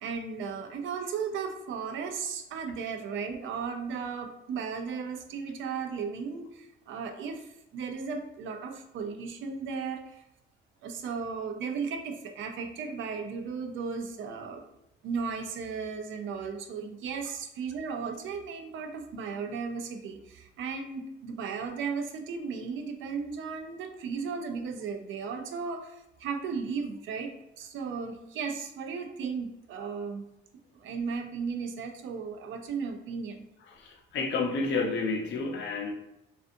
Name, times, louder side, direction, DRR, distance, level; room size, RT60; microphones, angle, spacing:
voice 1, 0.0-10.2 10.8-14.6 15.0-30.2 30.8-33.4, right 5 dB, 75° right, 0.4 m, -35 dB
voice 2, 33.7-35.9, left 3 dB, 70° left, 0.5 m, -30 dB
2.4 x 2.4 x 2.5 m
cardioid pair, 90°, 20 cm